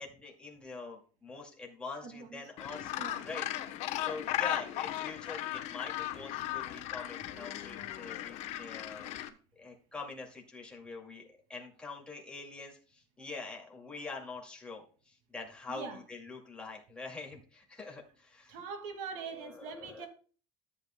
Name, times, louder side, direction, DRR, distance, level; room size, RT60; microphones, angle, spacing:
voice 1, 0.0-2.9 3.2-3.5 3.8-9.1 9.6-11.2 11.5-18.6 19.3-20.1, left 3 dB, 10° left, 2.3 m, -45 dB
voice 2, 2.0-2.4 3.0-3.2 15.7-16.0 18.5-20.1, right 5 dB, 80° right, 2.3 m, -42 dB
Gull seagull, 2.6-9.3, left 13 dB, 65° left, 0.9 m, -37 dB
14.0 x 8.2 x 2.2 m
cardioid pair, 150°, 13 cm